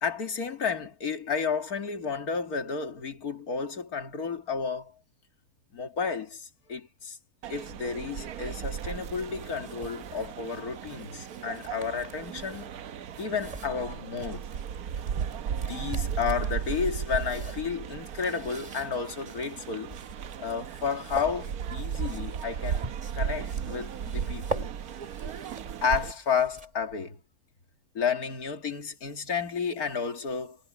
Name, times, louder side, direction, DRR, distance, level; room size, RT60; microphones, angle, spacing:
voice 1, 0.0-4.9 5.7-7.2 7.5-12.7 13.2-14.5 15.7-20.0 20.4-22.8 23.1-24.7 25.8-27.2 27.9-30.6, left 6 dB, 90° left, 2.5 m, -32 dB
sound 1, 7.4-26.1, right 8 dB, 85° right, 1.4 m, -36 dB
sound 2, 9.2-27.0, right 1 dB, 30° right, 2.8 m, -44 dB
omnidirectional pair, 1.5 m